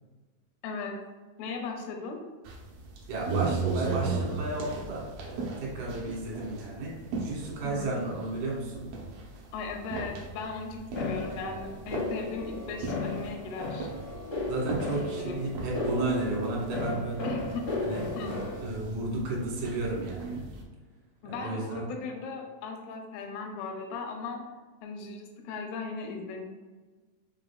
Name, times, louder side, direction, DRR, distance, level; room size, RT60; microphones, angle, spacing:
voice 1, 1.4-2.2 7.6-7.9 9.5-13.9 14.9-15.4 17.2-17.7 18.2-18.3 21.2-24.4 24.8-26.4, left 4 dB, 90° left, 3 dB, 2.6 m, -37 dB
sound 1, 2.5-20.6, right 4 dB, 80° right, 1.8 m, -37 dB
voice 2, 3.1-6.9 7.2-8.9 10.9-11.0 14.5-17.3 17.8-18.0 18.3-20.4 21.3-21.9, right 2 dB, 65° right, -3 dB, 2.3 m, -33 dB
sound 2, 11.0-18.6, left 3 dB, 60° left, 1.1 m, -35 dB
5.7 x 3.6 x 2.3 m, 1.3 s
omnidirectional pair, 4.5 m